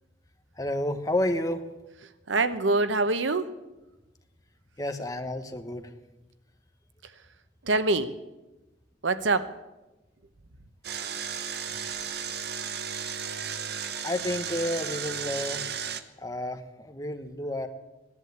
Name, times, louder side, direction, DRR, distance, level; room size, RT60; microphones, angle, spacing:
voice 1, 0.6-1.7 4.8-5.9 14.0-15.6 16.2-17.7, left 1 dB, 20° left, 7 dB, 1.1 m, -30 dB
voice 2, 2.3-3.5 7.6-8.1 9.0-9.6, right 3 dB, 90° right, 12 dB, 0.9 m, -24 dB
Engine, 10.8-16.0, right 7 dB, 60° right, 0.9 m, -34 dB
16.5 x 11.0 x 8.0 m, 1.1 s
head